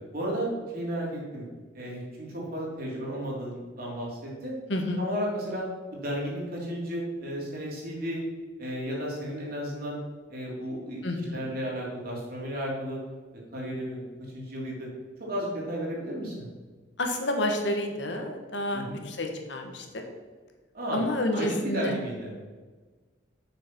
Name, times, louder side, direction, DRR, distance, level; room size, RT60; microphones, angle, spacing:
voice 1, 0.1-1.4 1.7-4.6 5.0-5.7 5.9-8.2 8.6-10.0 10.3-11.0 11.3-13.0 13.5-14.1 14.3-14.9 15.2-16.5 18.7-19.1 20.7-21.0 21.3-22.3, equal, 50° right, -3 dB, 3.1 m, -33 dB
voice 2, 4.7-5.0 11.0-11.5 17.0-19.9 20.9-22.0, left 1 dB, 70° left, 4 dB, 1.4 m, -29 dB
6.8 x 6.6 x 6.0 m, 1.3 s
head